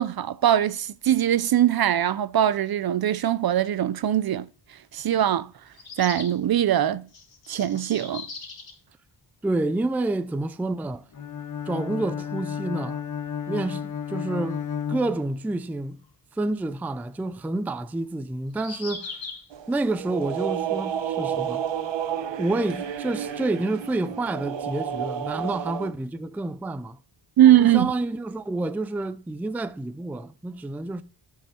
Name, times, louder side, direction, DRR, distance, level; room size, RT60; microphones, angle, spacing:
voice 1, 0.0-4.5 4.9-5.5 6.0-7.1 7.5-8.3 27.4-27.9, right 11 dB, 55° right, 0.5 m, -21 dB
sound 1, 4.3-4.4 5.7-6.4 7.1-8.8 10.0-10.1 10.3-10.4 12.8-12.9 16.0-16.1 18.5-19.5, left 4 dB, 70° left, 3.4 m, -39 dB
voice 2, 9.4-11.0 11.7-13.0 13.5-16.0 16.3-19.2 19.7-21.7 22.4-27.0 27.6-31.0, right 2 dB, 5° right, 0.4 m, -29 dB
Bowed string instrument, 11.1-15.7, left 8 dB, 40° left, 1.2 m, -32 dB
sound 2, 19.5-25.9, right 9 dB, 70° right, 1.0 m, -31 dB
8.6 x 5.7 x 4.4 m
wide cardioid pair, 125°, 46 cm